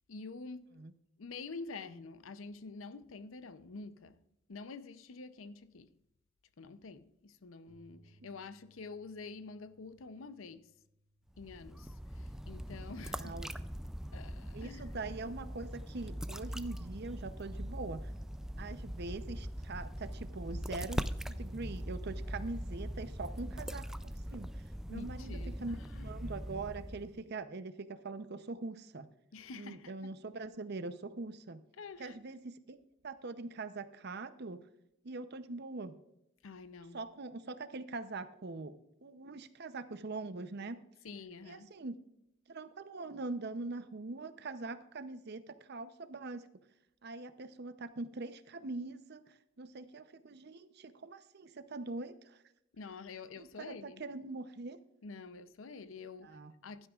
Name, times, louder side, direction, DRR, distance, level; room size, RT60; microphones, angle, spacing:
voice 1, 0.1-0.8 1.2-4.2 4.5-5.9 6.6-10.7 11.4-13.3 14.1-14.8 24.9-26.2 29.3-30.1 31.8-32.2 36.4-37.0 41.0-41.7 52.7-54.0 55.0-56.9, left 4 dB, 80° left, 0.6 m, -48 dB
Bass guitar, 7.7-13.9, right 1 dB, 30° right, 1.8 m, -69 dB
sound 1, 11.3-27.2, equal, 5° right, 0.3 m, -41 dB
voice 2, 13.1-13.5 14.5-18.1 18.6-24.6 24.9-25.8 26.0-29.1 29.5-31.6 32.0-32.8 33.0-34.6 35.0-35.9 36.9-38.7 39.0-40.8 41.5-42.0 42.5-46.4 47.0-52.4 53.4-54.8 56.2-56.5, right 3 dB, 55° right, 0.7 m, -43 dB
15.5 x 12.0 x 2.4 m
head